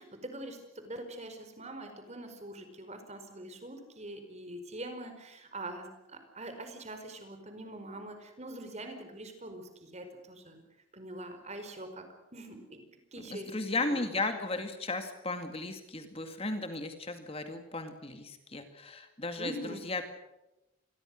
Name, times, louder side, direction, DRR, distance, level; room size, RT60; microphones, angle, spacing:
voice 1, 0.0-10.6 10.9-12.1 12.3-12.8 13.1-13.5 13.9-14.0 19.4-19.8, right 1 dB, 30° right, 7 dB, 4.8 m, -44 dB
voice 2, 13.2-19.5 19.8-20.0, left 2 dB, 30° left, 7 dB, 2.2 m, -35 dB
27.5 x 21.5 x 6.5 m, 0.96 s
head